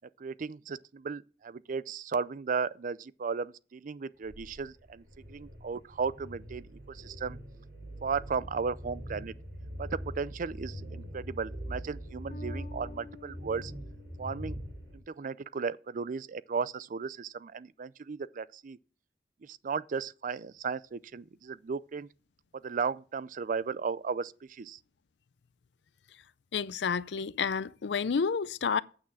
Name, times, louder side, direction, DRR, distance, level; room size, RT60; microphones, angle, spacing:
voice 1, 0.2-7.4 8.0-9.3 9.8-13.7 14.2-14.6 14.9-18.8 19.4-22.1 22.6-24.8, right 5 dB, 50° right, 0.4 m, -35 dB
sound 1, 4.2-15.0, equal, 75° right, 4.1 m, -43 dB
Bass guitar, 12.3-15.3, left 2 dB, 50° left, 1.0 m, -50 dB
voice 2, 26.5-28.8, left 6 dB, 70° left, 0.5 m, -30 dB
8.8 x 6.3 x 7.0 m
head